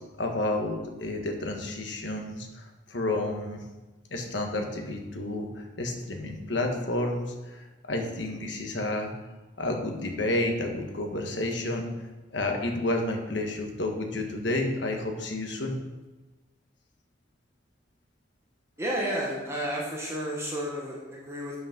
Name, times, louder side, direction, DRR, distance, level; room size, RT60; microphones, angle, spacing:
voice 1, 0.2-3.6 4.1-9.1 9.6-11.9 12.3-15.8, left 2 dB, 65° left, 3 dB, 1.4 m, -30 dB
voice 2, 18.8-21.6, equal, 15° right, -4 dB, 1.4 m, -31 dB
8.1 x 6.0 x 6.0 m, 1.2 s
head